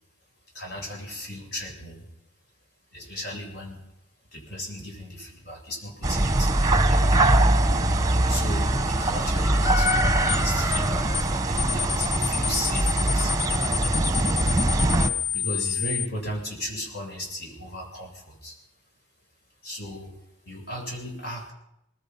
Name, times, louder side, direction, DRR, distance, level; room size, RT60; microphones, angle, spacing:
voice 1, 0.5-2.1 2.9-3.8 4.3-7.1 8.3-13.3 15.3-18.6 19.6-20.2 20.4-21.5, equal, 60° left, 0 dB, 7.8 m, -36 dB
sound 1, 6.0-15.1, right 1 dB, 20° right, 1.1 m, -22 dB
sound 2, 9.9-10.0 10.3-10.5 10.7-10.9 11.1-11.3 11.6-16.1, left 9 dB, 85° left, 0.7 m, -29 dB
23.0 x 20.0 x 5.7 m, 0.85 s
head